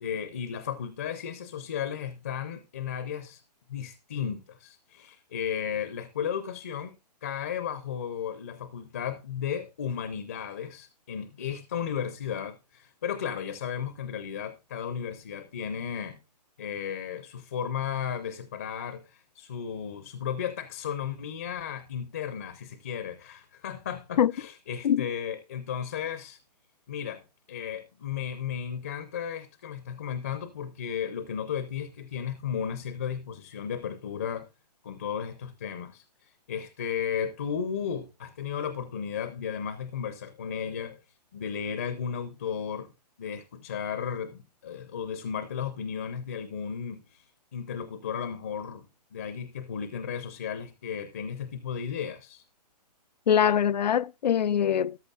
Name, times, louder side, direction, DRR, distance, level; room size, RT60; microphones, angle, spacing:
voice 1, 0.0-3.4 3.7-6.9 7.2-16.2 16.6-26.4 26.9-27.2 27.5-34.5 34.8-41.0 41.3-42.9 43.2-48.9 49.1-52.4, left 8 dB, 20° left, 0.5 m, -34 dB
voice 2, 53.3-55.0, left 9 dB, 90° left, 0.5 m, -23 dB
14.0 x 10.5 x 2.4 m
hypercardioid pair, 175°, 21 cm